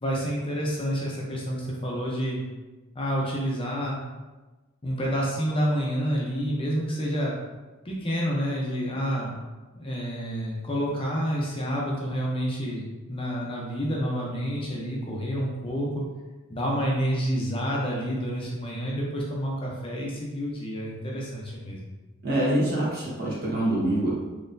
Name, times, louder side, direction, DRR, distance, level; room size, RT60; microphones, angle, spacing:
voice 1, 0.0-2.4 2.9-4.0 4.8-7.3 7.8-9.4 9.8-16.0 16.5-21.8, equal, 25° left, -3 dB, 0.7 m, -29 dB
voice 2, 22.2-24.1, right 1 dB, 50° right, -7 dB, 1.3 m, -25 dB
4.1 x 3.0 x 2.6 m, 1.2 s
head